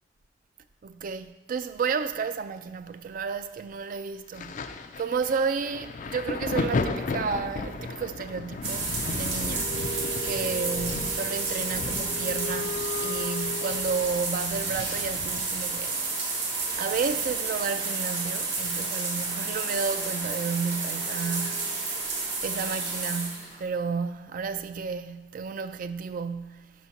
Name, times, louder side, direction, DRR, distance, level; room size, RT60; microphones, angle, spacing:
voice 1, 0.8-4.5 5.0-9.8 10.2-16.0 16.8-21.8 22.4-26.7, right 5 dB, 50° right, 0.3 m, -32 dB
Thunder, 4.3-17.7 17.9-19.3 20.1-20.3, left 3 dB, 45° left, 0.4 m, -36 dB
sound 1, 8.6-23.6, right 3 dB, 65° right, 1.4 m, -31 dB
sound 2, 9.3-14.6 16.5-16.6 16.8-22.2, left 2 dB, 65° left, 0.9 m, -40 dB
5.5 x 4.2 x 5.7 m
head